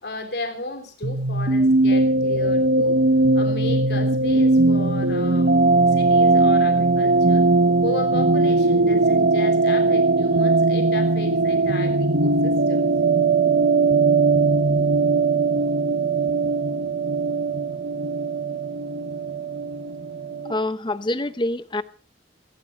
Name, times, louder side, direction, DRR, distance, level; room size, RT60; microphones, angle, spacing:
voice 1, 0.0-3.0 3.4-5.6 5.8-7.5 7.8-12.9, left 2 dB, 70° left, 5 dB, 3.5 m, -34 dB
sound 1, 1.0-20.5, right 3 dB, 85° right, 1.3 m, -19 dB
voice 2, 20.5-21.8, left 1 dB, 25° left, 13 dB, 0.8 m, -26 dB
19.0 x 17.0 x 4.4 m, 0.39 s
head